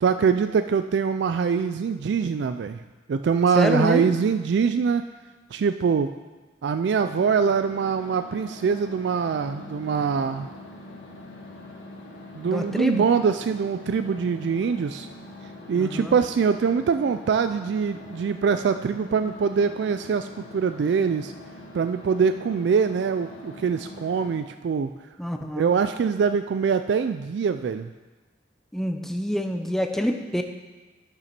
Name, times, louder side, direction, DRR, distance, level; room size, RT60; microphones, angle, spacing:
voice 1, 0.0-2.8 3.1-5.0 5.5-6.1 6.6-10.5 12.3-15.1 15.7-21.3 21.7-24.9 25.6-27.9, right 6 dB, 65° right, 9 dB, 0.3 m, -23 dB
voice 2, 3.6-4.1 12.4-13.0 15.7-16.2 25.2-25.7 28.7-30.4, equal, ahead, 5 dB, 0.6 m, -26 dB
sound 1, 6.9-24.4, left 1 dB, 85° left, 1.7 m, -43 dB
9.0 x 6.8 x 5.9 m, 1.3 s
head